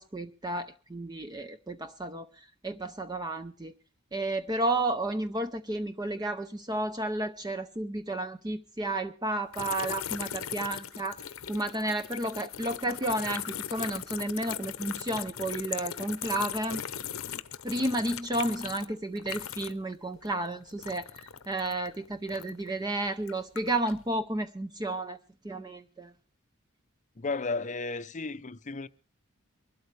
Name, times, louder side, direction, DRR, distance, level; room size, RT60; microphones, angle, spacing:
voice 1, 0.0-3.7 4.1-11.2 11.5-16.8 17.6-25.2 25.4-26.1, right 1 dB, 20° right, 0.6 m, -32 dB
sound 1, 9.5-19.9 20.2-22.7 23.2-24.0, left 9 dB, 80° left, 0.8 m, -39 dB
voice 2, 27.2-28.9, left 3 dB, 35° left, 0.6 m, -33 dB
24.0 x 12.5 x 3.3 m
head